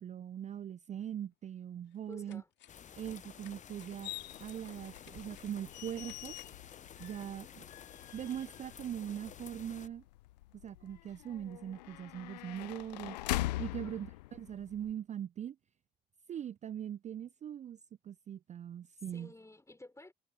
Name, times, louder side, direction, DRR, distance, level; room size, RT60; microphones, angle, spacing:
voice 1, 0.0-2.4 3.0-4.1 4.4-6.4 7.0-7.6 8.1-10.0 10.6-13.2 13.6-15.6 16.3-17.8 18.0-19.3, right 10 dB, 35° right, 0.4 m, -41 dB
sound 1, 1.3-1.4 1.9-3.0 3.3-6.7 7.0-7.1, left 12 dB, 60° left, 2.0 m, -63 dB
voice 2, 2.1-2.5 13.7-14.0 19.1-20.1, left 2 dB, 15° left, 4.1 m, -53 dB
sound 2, 2.7-9.9, left 8 dB, 35° left, 0.5 m, -52 dB
sound 3, 4.0-14.9, left 17 dB, 85° left, 0.5 m, -43 dB
hypercardioid pair, 45°, 21 cm